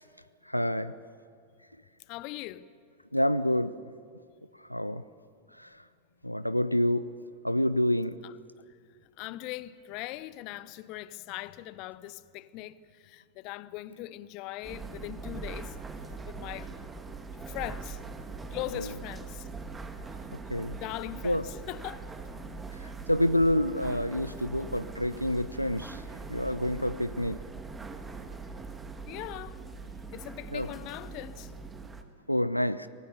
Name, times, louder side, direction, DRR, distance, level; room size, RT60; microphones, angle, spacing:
voice 1, 0.5-0.9 3.1-3.8 4.7-5.0 5.6-5.7 6.2-7.1 7.4-8.2 18.7-18.9 20.5-20.8 21.2-21.4 22.8-26.0 26.3-27.4 30.5-30.7 32.3-32.9, left 1 dB, 90° left, 0.4 m, -28 dB
voice 2, 2.1-2.7 8.2-8.3 9.2-15.8 16.3-16.7 17.5-18.0 18.5-19.5 20.8-23.0 24.4-24.7 29.1-29.6 30.1-31.5, left 16 dB, 40° left, 0.6 m, -40 dB
sound 1, 14.6-32.0, right 4 dB, 15° right, 1.5 m, -42 dB
24.5 x 19.0 x 7.1 m
figure-of-eight pair, 90°, 0 cm